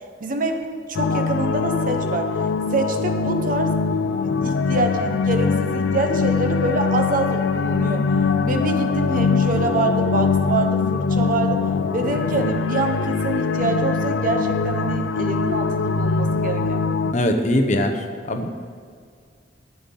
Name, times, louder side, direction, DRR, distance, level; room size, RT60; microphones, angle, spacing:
voice 1, 0.2-2.3 2.7-3.7 4.4-8.0 8.4-11.6 11.9-17.1, right 2 dB, 45° right, 5 dB, 0.8 m, -25 dB
sound 1, 0.9-17.1, left 4 dB, 90° left, 0.4 m, -22 dB
voice 2, 17.1-18.5, left 1 dB, 40° left, 6 dB, 0.8 m, -21 dB
12.0 x 8.3 x 3.8 m, 2.1 s
head